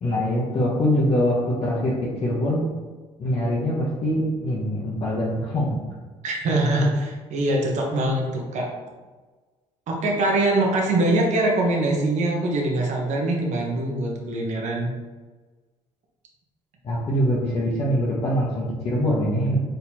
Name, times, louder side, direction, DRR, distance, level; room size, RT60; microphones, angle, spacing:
voice 1, 0.0-1.9 2.2-2.6 3.2-5.8 16.8-19.6, equal, 50° left, -7 dB, 1.1 m, -23 dB
voice 2, 6.2-8.7 9.9-14.9, right 2 dB, 60° right, 0 dB, 1.0 m, -23 dB
4.2 x 3.8 x 2.9 m, 1.3 s
supercardioid pair, 80°, 13 cm